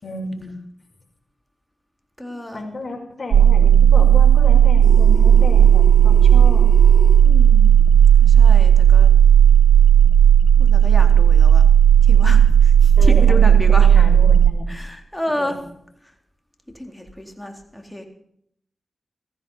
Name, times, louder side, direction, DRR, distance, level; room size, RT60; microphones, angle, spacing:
voice 1, 0.0-0.5 2.2-6.7 13.0-13.4 13.8-14.7 15.4-15.6, left 2 dB, 40° left, 1 dB, 5.9 m, -32 dB
voice 2, 2.2-2.6 7.2-7.7 8.2-9.1 10.6-11.6 12.0-13.9 14.7-15.6 16.7-18.1, left 1 dB, 5° left, 3 dB, 3.9 m, -29 dB
sound 1, 3.3-14.5, right 9 dB, 90° right, 0.8 m, -12 dB
sound 2, 4.8-7.2, right 2 dB, 55° right, 6.7 m, -34 dB
15.5 x 15.0 x 5.7 m, 0.71 s
cardioid pair, 45°, 0 cm